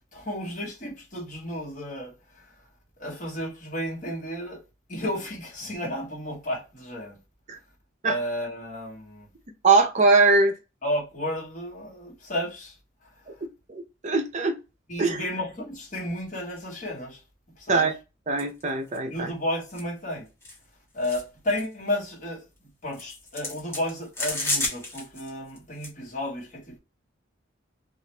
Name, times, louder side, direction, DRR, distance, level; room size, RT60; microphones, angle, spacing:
voice 1, 0.1-2.5 3.0-4.6 4.9-7.2 8.0-9.3 10.8-12.8 13.0-13.1 14.9-17.2 17.6-17.9 19.1-20.3 20.9-22.5 22.8-26.8, left 1 dB, 40° left, 1.3 m, -32 dB
voice 2, 9.6-10.6 13.7-14.6 15.0-15.2 17.7-17.9 18.3-19.3, right 3 dB, 40° right, 0.5 m, -21 dB
sound 1, 18.4-18.6 18.9-19.0 19.7-19.8 20.4-20.6 21.0-21.2 21.5-21.7 22.9-25.3 25.6-25.9, left 2 dB, 15° left, 1.1 m, -31 dB
3.0 x 2.4 x 3.2 m
head